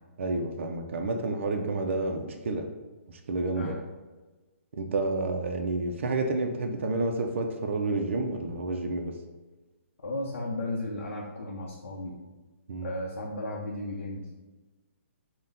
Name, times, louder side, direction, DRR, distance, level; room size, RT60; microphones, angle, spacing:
voice 1, 0.2-2.6 3.1-3.8 4.7-9.1 12.7-12.9, right 2 dB, 60° right, 3 dB, 0.5 m, -30 dB
voice 2, 10.0-12.1 12.8-14.4, left 1 dB, 75° left, -3 dB, 0.6 m, -35 dB
3.9 x 2.1 x 3.8 m, 1.2 s
hypercardioid pair, 160°, 7 cm